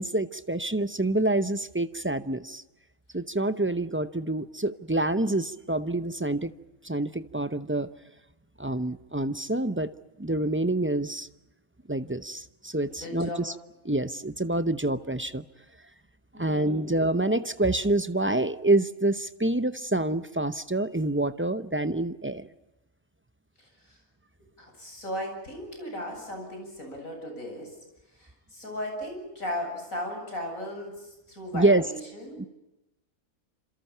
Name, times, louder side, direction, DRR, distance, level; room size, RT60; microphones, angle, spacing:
voice 1, 0.0-2.6 3.1-6.5 6.8-7.9 8.6-9.9 10.2-11.3 11.9-13.5 13.8-15.4 16.4-22.5 31.5-31.8 32.4-32.5, right 2 dB, 15° right, 12 dB, 0.5 m, -27 dB
voice 2, 12.9-13.4 16.3-16.8 23.6-24.0 24.6-27.7 28.1-32.4, left 1 dB, 70° left, 2 dB, 8.4 m, -37 dB
28.0 x 27.5 x 5.8 m, 0.97 s
omnidirectional pair, 1.5 m